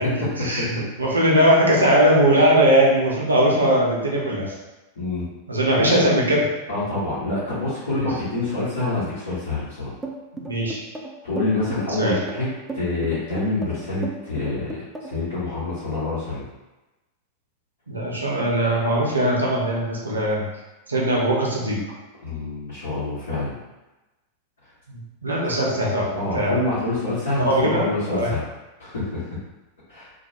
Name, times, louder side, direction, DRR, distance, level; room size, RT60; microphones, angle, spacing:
voice 1, 0.0-4.5 5.5-6.4 10.3-10.8 12.0-12.2 17.9-20.4 20.9-21.8 24.9-26.6 27.4-27.9 28.1-28.3, right 1 dB, 80° right, -4 dB, 0.6 m, -20 dB
voice 2, 5.7-6.1 6.7-9.9 11.2-16.5 22.2-23.5 26.1-28.4 28.8-29.2 29.9-30.1, left 2 dB, 65° left, -12 dB, 0.9 m, -26 dB
sound 1, 10.0-15.3, right 3 dB, 10° right, 0.3 m, -35 dB
2.3 x 2.1 x 2.9 m, 1.1 s
figure-of-eight pair, 90°, 0 cm